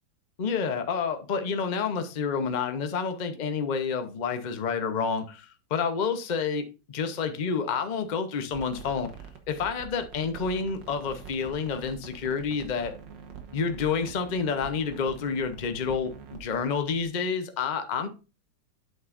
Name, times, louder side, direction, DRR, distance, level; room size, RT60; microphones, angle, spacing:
voice 1, 0.4-9.1 9.5-12.9 13.5-18.1, left 5 dB, 35° left, 7 dB, 0.7 m, -29 dB
sound 1, 8.5-17.1, right 7 dB, 85° right, 1.9 m, -45 dB
8.6 x 7.7 x 2.5 m, 0.31 s
omnidirectional pair, 1.9 m